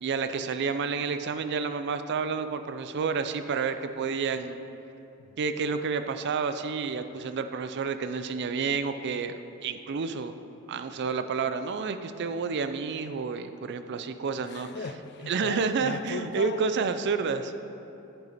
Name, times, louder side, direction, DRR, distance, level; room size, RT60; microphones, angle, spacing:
voice 1, 0.0-4.6 5.4-10.3 10.7-14.7 15.3-17.5, right 5 dB, 50° right, 10 dB, 0.4 m, -30 dB
voice 2, 14.4-16.7 17.5-17.6, left 4 dB, 50° left, 9 dB, 0.4 m, -37 dB
9.2 x 7.9 x 4.1 m, 2.9 s
head